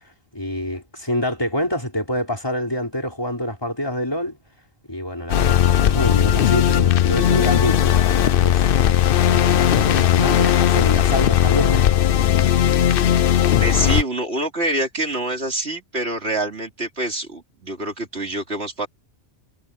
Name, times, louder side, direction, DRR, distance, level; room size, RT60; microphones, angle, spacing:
voice 1, 0.3-4.4 4.9-8.7 9.2-11.9, left 1 dB, 20° left, 5.2 m, -26 dB
sound 1, 5.3-14.0, left 10 dB, 60° left, 0.8 m, -17 dB
voice 2, 13.6-18.9, right 2 dB, 70° right, 3.7 m, -26 dB
omnidirectional pair, 1.1 m